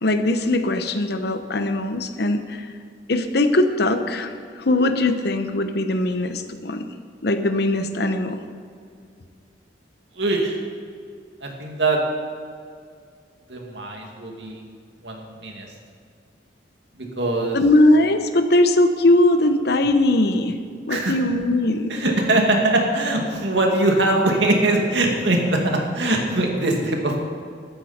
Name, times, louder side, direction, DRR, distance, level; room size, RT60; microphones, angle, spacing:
voice 1, 0.0-2.7 3.1-6.9 7.2-8.4 17.5-20.6 20.9-21.9, left 1 dB, 65° left, 8 dB, 0.9 m, -20 dB
voice 2, 10.2-10.6 11.4-12.0 13.5-14.6 15.0-15.7 17.0-17.6 20.9-21.1 21.9-27.2, right 2 dB, 75° right, 1 dB, 2.3 m, -22 dB
15.0 x 12.5 x 4.3 m, 2.3 s
head